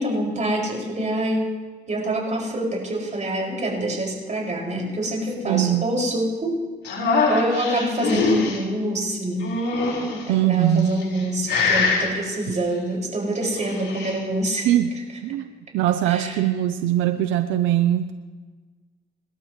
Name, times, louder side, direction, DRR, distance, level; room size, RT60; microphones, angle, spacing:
voice 1, 0.0-1.6 1.9-6.6 7.3-9.5 10.2-14.7 16.1-16.4, right 1 dB, 40° right, -1 dB, 6.1 m, -26 dB
voice 2, 5.4-5.9 10.3-10.9 14.6-14.9 15.2-18.1, right 12 dB, 85° right, 9 dB, 0.6 m, -21 dB
sound 1, 6.8-8.6 9.4-10.2 10.9-11.2 11.5-12.1 13.4-14.2, left 4 dB, 70° left, 4.9 m, -23 dB
27.0 x 12.0 x 3.2 m, 1.4 s
supercardioid pair, 60°, 19 cm